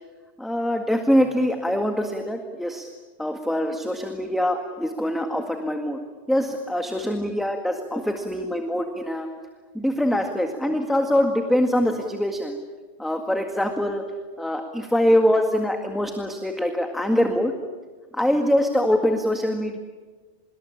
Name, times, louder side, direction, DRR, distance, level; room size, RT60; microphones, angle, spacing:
voice 1, 0.4-2.9 3.2-6.0 6.3-9.3 9.7-12.6 13.0-14.0 14.4-17.5 18.1-19.8, equal, ahead, 4 dB, 1.9 m, -23 dB
25.5 x 22.0 x 8.6 m, 1.4 s
omnidirectional pair, 1.1 m